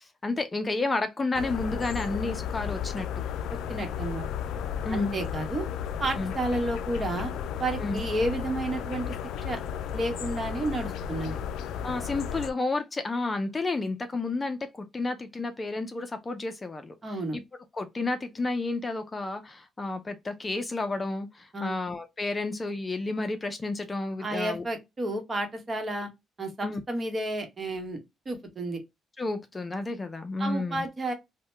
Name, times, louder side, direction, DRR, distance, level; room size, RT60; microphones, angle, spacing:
voice 1, 0.0-3.1 4.8-5.1 6.2-6.3 7.8-8.0 11.8-17.4 17.7-24.6 26.6-26.8 29.2-30.9, left 3 dB, 25° left, 0.5 m, -31 dB
sound 1, 1.3-12.5, left 8 dB, 85° left, 0.3 m, -34 dB
voice 2, 3.5-4.3 4.9-5.6 6.0-7.3 7.6-9.1 9.4-9.6 9.9-11.4 17.0-17.4 21.5-21.7 24.2-26.1 26.4-28.0 28.2-28.8 30.4-31.1, right 1 dB, 35° right, 1.1 m, -31 dB
2.7 x 2.1 x 3.2 m
cardioid pair, 90°, 0 cm